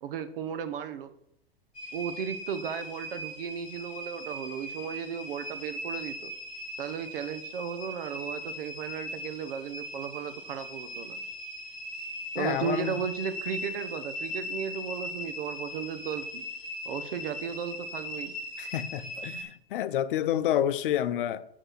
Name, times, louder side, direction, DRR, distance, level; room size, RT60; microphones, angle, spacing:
voice 1, 0.0-1.1 1.9-6.3 6.8-11.2 12.3-16.4 16.8-18.4, right 7 dB, 65° right, 1.1 m, -35 dB
sound 1, 1.7-19.4, left 1 dB, 25° left, 2.1 m, -39 dB
voice 2, 12.4-12.9 18.6-21.5, left 11 dB, 60° left, 0.7 m, -29 dB
9.0 x 4.2 x 6.2 m
hypercardioid pair, 110°, 30 cm